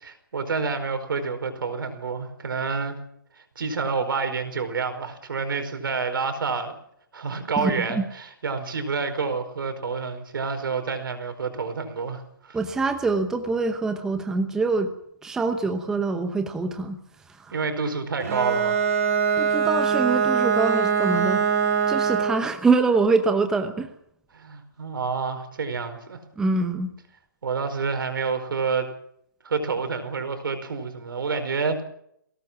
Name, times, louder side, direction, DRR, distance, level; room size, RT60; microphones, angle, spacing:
voice 1, 0.0-3.0 3.5-6.7 7.1-12.6 17.5-18.8 24.3-26.2 27.4-28.9 29.4-31.8, right 4 dB, 70° right, 9 dB, 4.9 m, -28 dB
voice 2, 7.6-8.0 12.5-14.9 15.2-17.0 17.3-17.6 19.4-21.5 21.9-23.9 26.4-26.9, right 3 dB, 5° right, 7 dB, 0.9 m, -24 dB
Bowed string instrument, 18.2-22.5, right 6 dB, 40° right, 4.5 m, -22 dB
20.5 x 18.0 x 7.4 m, 0.73 s
hypercardioid pair, 165°, 12 cm